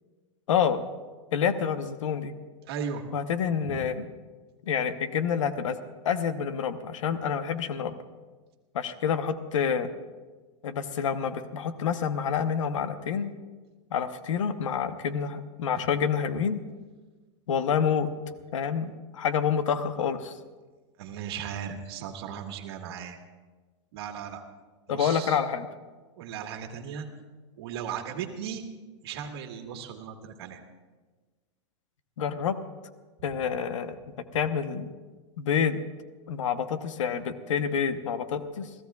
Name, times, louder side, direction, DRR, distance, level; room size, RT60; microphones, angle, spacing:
voice 1, 0.5-0.8 1.3-2.3 3.1-4.1 4.7-5.8 6.0-8.0 8.7-9.9 10.6-13.3 13.9-16.6 17.5-18.1 18.5-20.3 24.9-25.7 32.2-32.6 33.2-34.0 34.3-34.9 35.4-35.8 36.3-38.7, left 7 dB, 90° left, 11 dB, 1.0 m, -28 dB
voice 2, 2.6-3.0 3.6-3.8 21.0-23.2 23.9-24.4 24.9-25.4 26.2-27.1 27.6-28.6 29.0-30.6, right 8 dB, 55° right, 4 dB, 1.6 m, -36 dB
28.0 x 15.0 x 2.4 m, 1.3 s
supercardioid pair, 165°, 16 cm